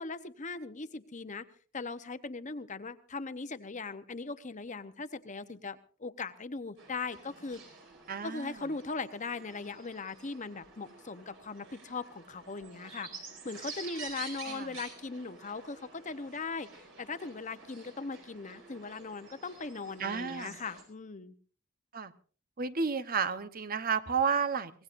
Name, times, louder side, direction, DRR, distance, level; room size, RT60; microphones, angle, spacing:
voice 1, 0.0-1.4 1.7-7.6 8.2-13.1 13.4-21.3, left 4 dB, 35° left, 11 dB, 0.9 m, -39 dB
sound 1, 6.8-20.8, right 4 dB, 70° right, 5.1 m, -49 dB
voice 2, 8.1-8.6 14.5-14.7 20.0-20.6 21.9-22.1 22.6-24.7, right 6 dB, 45° right, 11 dB, 0.9 m, -31 dB
24.5 x 18.5 x 2.6 m, 0.41 s
head